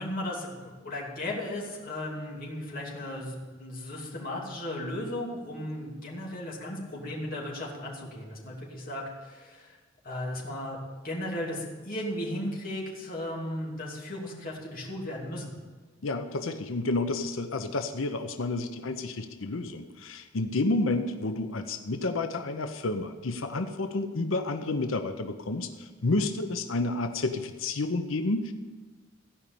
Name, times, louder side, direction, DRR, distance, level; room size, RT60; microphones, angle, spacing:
voice 1, 0.0-9.8 10.0-10.8 11.0-15.5, left 1 dB, 45° left, -3 dB, 2.8 m, -36 dB
voice 2, 16.0-28.5, left 2 dB, 85° left, 7 dB, 0.7 m, -30 dB
16.0 x 5.4 x 8.6 m, 1.4 s
head